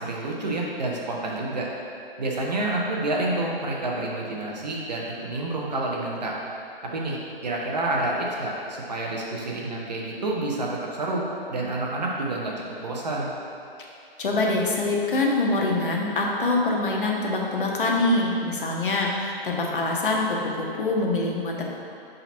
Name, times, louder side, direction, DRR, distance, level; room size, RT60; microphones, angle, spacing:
voice 1, 0.0-1.7 2.2-6.4 6.9-12.5 12.8-13.3, right 2 dB, 45° right, -3 dB, 1.0 m, -28 dB
voice 2, 14.2-21.7, left 2 dB, 60° left, -1 dB, 1.1 m, -24 dB
7.0 x 3.9 x 4.4 m, 2.5 s
hypercardioid pair, 180°, 30 cm